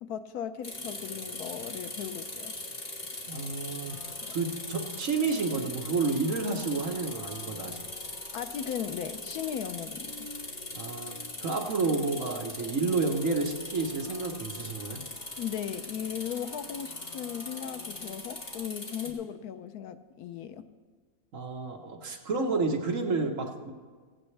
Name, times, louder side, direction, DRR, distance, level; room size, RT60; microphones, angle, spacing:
voice 1, 0.0-2.5 4.2-4.3 8.3-10.1 15.4-20.7, left 9 dB, 75° left, 10 dB, 1.1 m, -37 dB
sound 1, 0.6-19.1, left 2 dB, 35° left, 2.1 m, -40 dB
voice 2, 3.3-4.0 4.3-7.8 10.7-11.1 11.4-15.0 21.3-23.7, right 3 dB, 55° right, 2 dB, 1.5 m, -30 dB
sound 2, 3.9-18.7, left 2 dB, 40° right, 3.7 m, -53 dB
16.5 x 16.0 x 3.3 m, 1.5 s
omnidirectional pair, 1.6 m